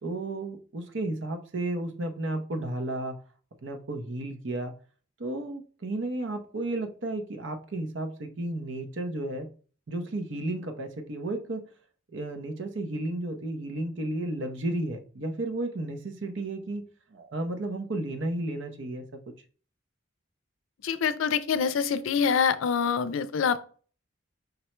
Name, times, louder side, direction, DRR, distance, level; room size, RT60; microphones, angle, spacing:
voice 1, 0.0-3.2 3.6-4.7 5.2-9.5 9.9-11.6 12.1-19.0, right 2 dB, 75° right, 7 dB, 0.7 m, -33 dB
voice 2, 20.8-23.6, left 6 dB, 90° left, 13 dB, 0.4 m, -25 dB
5.2 x 2.1 x 4.3 m, 0.41 s
head